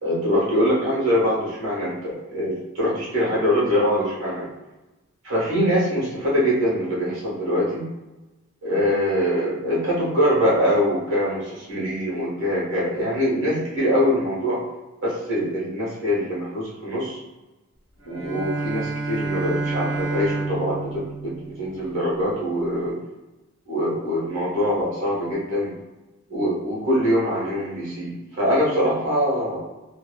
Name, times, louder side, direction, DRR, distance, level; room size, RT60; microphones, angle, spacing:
voice 1, 0.0-4.5 5.2-7.9 8.6-14.6 15.0-17.2 18.0-23.0 23.7-25.7 26.3-29.6, equal, 65° right, -7 dB, 1.3 m, -23 dB
Bowed string instrument, 18.0-22.2, right 3 dB, 85° right, 1.2 m, -29 dB
3.0 x 2.4 x 2.3 m, 1.1 s
head